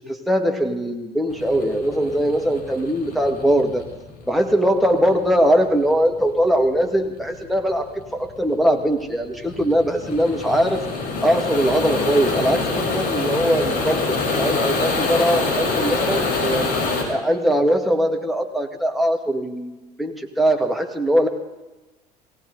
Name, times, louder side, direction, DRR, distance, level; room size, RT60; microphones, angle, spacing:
voice 1, 0.1-3.9 4.3-10.8 11.2-16.8 17.1-21.3, equal, ahead, 2 dB, 2.0 m, -21 dB
sound 1, 1.3-17.0, left 3 dB, 45° left, 4.9 m, -26 dB
18.5 x 17.5 x 4.0 m, 1.1 s
figure-of-eight pair, 65°, 21 cm